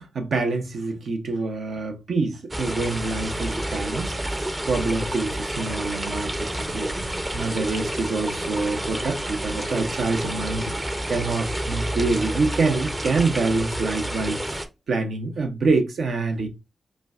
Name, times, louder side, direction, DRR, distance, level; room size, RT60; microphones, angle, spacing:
voice 1, 0.0-14.4 14.9-16.5, right 3 dB, 80° right, 0.7 m, -26 dB
sound 1, 2.5-14.7, right 1 dB, 20° right, 0.5 m, -29 dB
5.0 x 2.2 x 2.4 m
cardioid pair, 70°, 0 cm